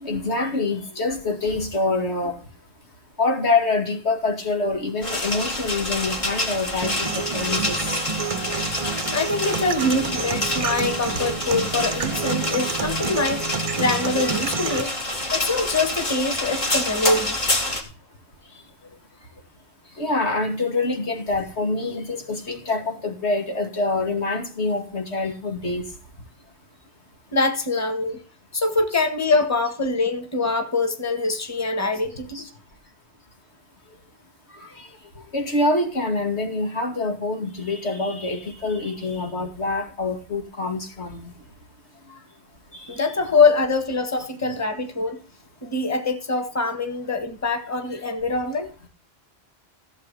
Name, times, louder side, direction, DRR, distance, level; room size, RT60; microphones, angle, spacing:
voice 1, 0.0-2.4 3.2-7.8 11.1-11.2 14.2-14.3 20.0-25.8 32.3-32.4 35.3-41.2 42.7-42.8, left 3 dB, 85° left, 3 dB, 2.7 m, -25 dB
sound 1, 5.0-17.8, left 1 dB, 45° left, 2.7 m, -28 dB
sound 2, 6.8-14.8, right 6 dB, 40° right, 0.7 m, -29 dB
voice 2, 9.1-13.5 13.8-14.9 15.3-17.5 27.3-28.2 28.5-32.5 42.9-45.2 45.6-48.7, left 3 dB, 15° left, 7 dB, 1.6 m, -24 dB
15.5 x 7.6 x 4.1 m, 0.37 s
omnidirectional pair, 1.1 m